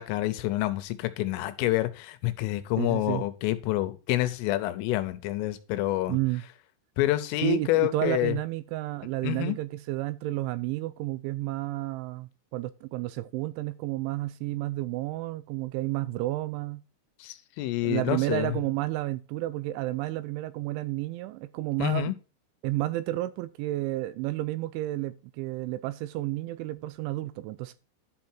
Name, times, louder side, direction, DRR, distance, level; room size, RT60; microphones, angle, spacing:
voice 1, 0.0-6.2 7.0-8.4 9.2-9.6 17.2-18.6 21.8-22.1, left 16 dB, 80° left, 3.2 m, -28 dB
voice 2, 2.8-3.3 6.1-6.4 7.4-16.8 17.8-22.1 22.6-27.7, right 17 dB, 85° right, 2.7 m, -31 dB
11.0 x 5.7 x 4.4 m
omnidirectional pair, 5.9 m